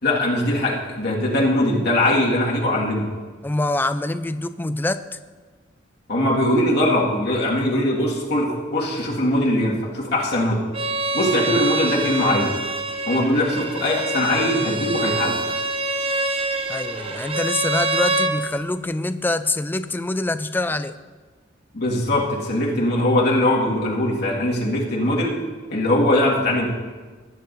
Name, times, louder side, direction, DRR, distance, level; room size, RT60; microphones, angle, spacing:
voice 1, 0.0-3.1 6.1-10.7 11.1-12.5 13.1-15.4 21.7-25.3 25.7-26.7, left 1 dB, 55° left, -4 dB, 1.8 m, -21 dB
voice 2, 3.4-5.2 16.7-21.0, left 2 dB, 10° left, 11 dB, 0.3 m, -25 dB
Bowed string instrument, 10.7-18.4, right 2 dB, 30° right, 0.7 m, -25 dB
18.5 x 9.1 x 2.6 m, 1.4 s
head